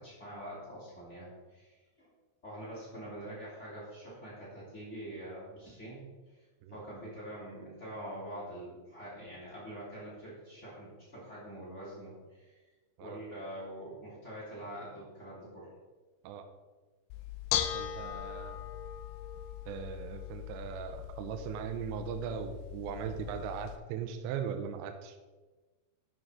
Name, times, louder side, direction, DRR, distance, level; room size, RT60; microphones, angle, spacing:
voice 1, 0.0-2.1 2.4-6.0 6.7-12.6 13.0-15.7 19.3-19.4, right 1 dB, 20° left, -7 dB, 2.8 m, -45 dB
Bell / Dishes pots and pans, 17.1-23.8, left 11 dB, 85° left, 2.8 m, -39 dB
voice 2, 17.7-18.6 19.7-25.2, right 7 dB, 85° right, 6 dB, 2.7 m, -39 dB
11.5 x 6.2 x 3.7 m, 1.3 s
omnidirectional pair, 5.4 m